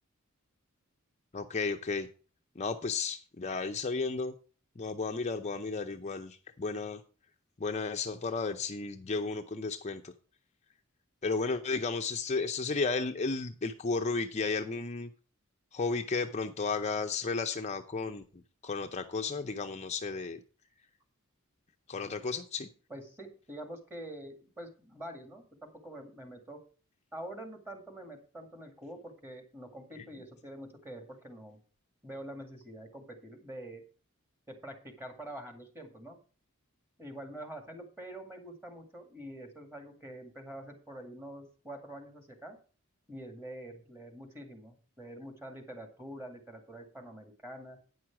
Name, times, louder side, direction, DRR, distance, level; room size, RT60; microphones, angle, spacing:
voice 1, 1.3-2.1 2.6-4.3 4.8-7.0 7.6-10.1 11.2-15.1 15.7-20.4 21.9-22.7, left 4 dB, 35° left, 6 dB, 0.6 m, -33 dB
voice 2, 22.9-26.6 27.1-31.6 32.0-33.8 34.5-36.2 37.0-42.6 43.1-47.8, right 1 dB, 10° right, 5 dB, 2.0 m, -46 dB
9.5 x 6.3 x 5.8 m, 0.38 s
head